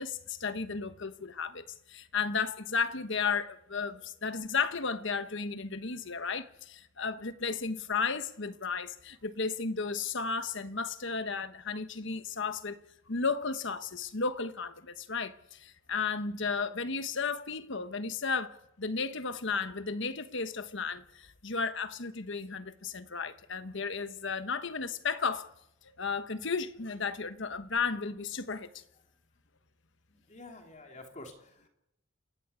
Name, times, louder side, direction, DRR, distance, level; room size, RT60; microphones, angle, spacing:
voice 1, 0.0-12.8 13.1-25.5 26.0-28.8, left 5 dB, 60° left, 1.3 m, -34 dB
voice 2, 30.1-31.7, left 2 dB, 35° left, 3.2 m, -49 dB
29.0 x 14.5 x 8.3 m
head